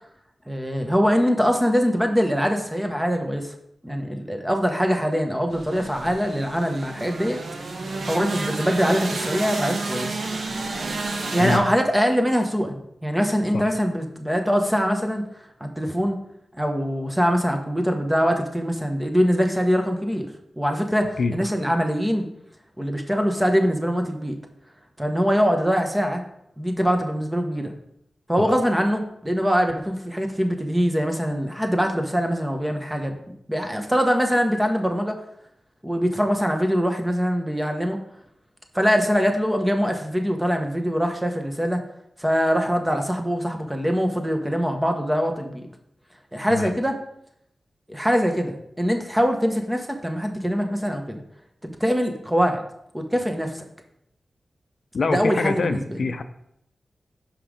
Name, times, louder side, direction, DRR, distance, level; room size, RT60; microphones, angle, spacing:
voice 1, 0.5-3.5 3.8-7.4 7.9-10.2 11.3-16.2 16.5-20.3 20.6-22.3 22.8-24.4 25.0-26.2 26.6-27.7 28.3-33.1 33.5-35.2 35.8-38.0 38.7-41.8 42.2-45.7 46.3-47.0 47.9-51.2 51.6-52.6 52.9-53.7 55.1-56.0, equal, 10° right, 4 dB, 1.1 m, -23 dB
sound 1, 5.5-11.6, right 3 dB, 65° right, 0.9 m, -30 dB
voice 2, 54.9-56.2, left 4 dB, 70° left, 8 dB, 0.5 m, -25 dB
5.5 x 5.2 x 5.0 m, 0.75 s
cardioid pair, 65°, 0 cm